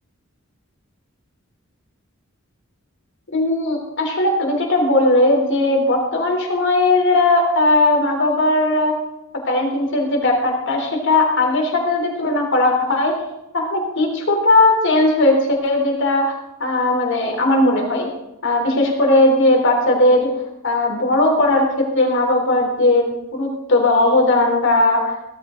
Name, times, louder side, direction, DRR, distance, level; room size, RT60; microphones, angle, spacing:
voice 1, 3.3-9.0 9.4-13.2 13.5-16.3 16.6-18.1 18.4-20.3 20.6-25.1, left 2 dB, 60° left, 1 dB, 3.4 m, -17 dB
17.0 x 13.5 x 3.8 m, 0.92 s
head